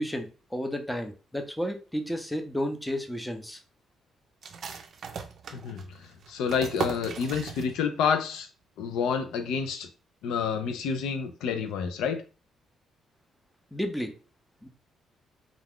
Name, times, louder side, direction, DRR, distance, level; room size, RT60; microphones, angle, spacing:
voice 1, 0.0-3.6 13.7-14.1 14.6-14.7, equal, 5° left, 6 dB, 0.5 m, -32 dB
sound 1, 4.4-8.1 8.3-8.4 8.9-9.3, right 5 dB, 60° right, 0.4 m, -38 dB
voice 2, 5.5-5.8 6.3-8.5 8.8-9.9 10.2-12.2, left 6 dB, 90° left, 8 dB, 0.4 m, -28 dB
2.3 x 2.3 x 3.4 m, 0.35 s
cardioid pair, 90°, 0 cm